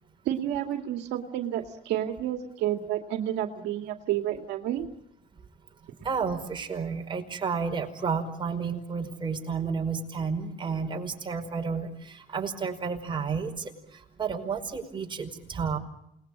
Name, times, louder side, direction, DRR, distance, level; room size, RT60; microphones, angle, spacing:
voice 1, 0.3-4.9, right 11 dB, 85° right, 4 dB, 2.2 m, -30 dB
voice 2, 6.0-13.5 14.2-15.8, right 5 dB, 30° right, 3 dB, 5.1 m, -31 dB
29.0 x 20.5 x 8.6 m, 0.80 s
cardioid pair, 110°, 17 cm